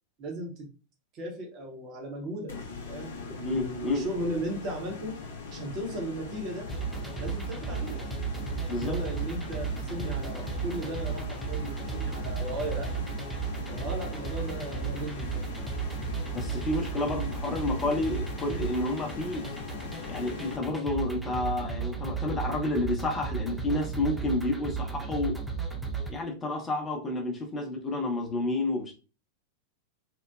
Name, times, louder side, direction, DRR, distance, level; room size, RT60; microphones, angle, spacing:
voice 1, 0.2-0.7 1.1-2.6 2.9-5.2 5.5-6.7 7.2-8.1 8.7-13.0 13.7-15.5, right 1 dB, 35° right, 0.8 m, -36 dB
sound 1, 2.5-20.6, left 4 dB, 60° left, 0.5 m, -40 dB
voice 2, 3.4-4.1 8.7-9.0 16.3-19.5 20.1-25.4 26.1-28.9, left 2 dB, 20° left, 0.7 m, -30 dB
sound 2, 6.7-26.1, right 5 dB, ahead, 0.4 m, -34 dB
2.9 x 2.1 x 2.3 m
figure-of-eight pair, 90°, 0 cm